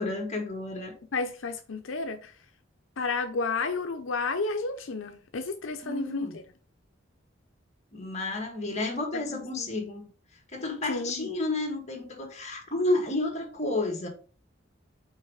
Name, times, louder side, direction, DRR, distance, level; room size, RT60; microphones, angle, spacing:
voice 1, 0.0-0.9 5.8-6.4 7.9-10.1 10.5-14.1, left 2 dB, 35° left, 1.7 m, -31 dB
voice 2, 1.1-2.3 3.0-6.4 9.3-9.7 10.9-11.3, left 3 dB, 85° left, 0.7 m, -31 dB
5.6 x 4.0 x 4.9 m
head